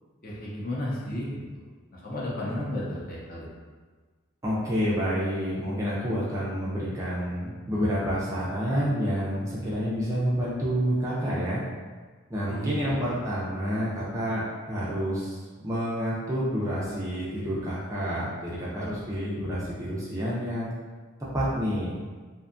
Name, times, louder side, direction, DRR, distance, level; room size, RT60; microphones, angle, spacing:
voice 1, 0.2-1.6 1.9-3.5 12.5-13.2, left 1 dB, 45° left, -6 dB, 0.6 m, -33 dB
voice 2, 4.4-11.6 12.3-20.7 21.3-22.0, equal, 15° right, -7 dB, 0.4 m, -29 dB
2.7 x 2.2 x 2.5 m, 1.4 s
head